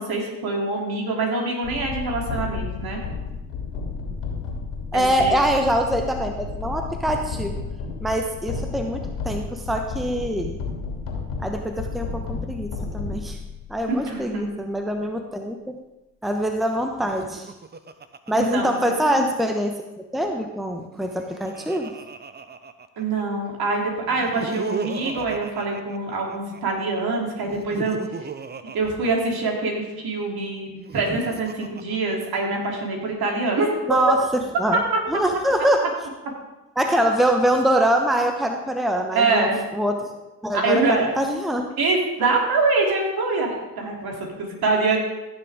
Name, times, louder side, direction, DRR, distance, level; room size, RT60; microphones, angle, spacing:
voice 1, 0.0-3.0 4.9-5.4 13.9-14.4 18.3-19.2 23.0-28.0 28.7-33.7 34.7-34.8 39.1-39.6 40.5-41.1 41.8-45.0, right 3 dB, 55° right, 0 dB, 3.2 m, -24 dB
sound 1, 1.6-13.8, left 4 dB, 70° left, 2.8 m, -32 dB
voice 2, 4.9-7.6 8.0-10.6 11.4-13.4 13.7-15.8 16.2-17.5 18.3-19.7 20.1-21.9 33.9-34.8 35.1-35.8 36.8-40.0 40.4-41.6, equal, ahead, 4 dB, 1.0 m, -24 dB
Laughter, 17.0-19.5 20.8-23.2 24.1-26.6 27.4-29.9 30.7-32.7, right 4 dB, 20° right, 0.8 m, -36 dB
15.5 x 7.0 x 3.6 m, 1.0 s
hypercardioid pair, 60°, 45 cm